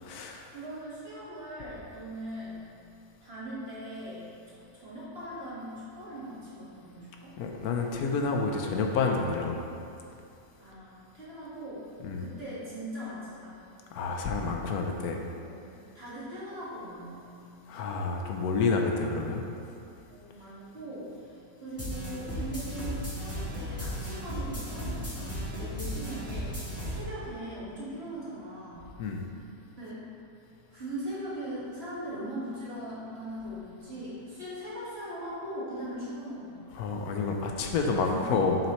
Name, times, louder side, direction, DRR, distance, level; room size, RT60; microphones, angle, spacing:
voice 1, 0.0-0.5 7.4-9.7 12.0-12.2 13.9-15.2 17.7-19.4 29.0-29.2 36.8-38.6, left 4 dB, 90° left, 2 dB, 1.2 m, -29 dB
voice 2, 0.5-2.6 3.2-7.4 10.6-11.8 12.2-13.7 15.4-17.3 20.1-28.8 29.8-30.0 30.7-36.7 37.8-38.5, right 1 dB, 45° right, -9 dB, 2.0 m, -40 dB
sound 1, 21.8-27.0, equal, 10° left, 1.4 m, -35 dB
7.3 x 5.9 x 3.1 m, 2.6 s
omnidirectional pair, 1.5 m